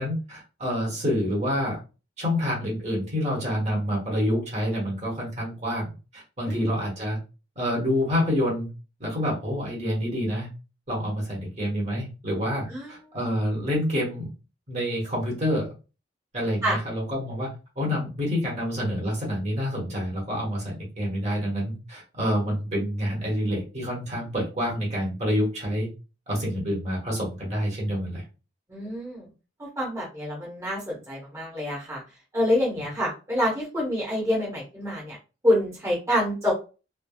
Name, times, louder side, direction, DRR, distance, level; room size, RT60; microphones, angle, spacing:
voice 1, 0.0-1.8 2.2-7.2 7.6-8.7 9.0-10.5 10.9-14.3 14.7-15.7 16.3-17.5 17.8-25.9 26.3-28.2 32.8-32.9, equal, 40° right, -4 dB, 1.3 m, -27 dB
voice 2, 28.7-29.2 29.6-32.0 32.3-35.2 35.4-36.5, left 1 dB, 15° right, -5 dB, 1.1 m, -26 dB
3.3 x 2.2 x 2.3 m, 0.31 s
head